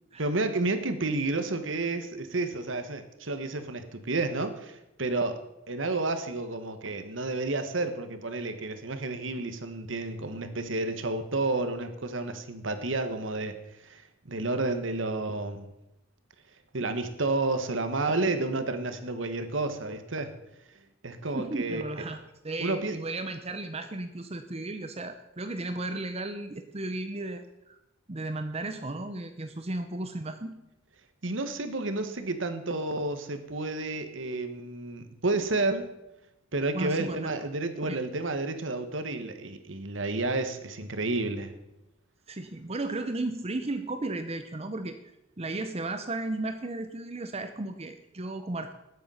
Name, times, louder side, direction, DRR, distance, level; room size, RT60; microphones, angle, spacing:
voice 1, 0.2-13.6 13.8-14.0 14.3-15.7 16.7-20.3 21.0-21.8 22.6-23.0 31.2-35.9 36.5-41.5, right 2 dB, 90° right, 9 dB, 1.4 m, -31 dB
voice 2, 21.3-27.8 28.1-30.6 36.7-37.3 37.9-38.0 42.3-45.0 45.4-48.7, right 2 dB, 35° right, 8 dB, 0.8 m, -34 dB
19.5 x 8.1 x 5.7 m, 0.91 s
head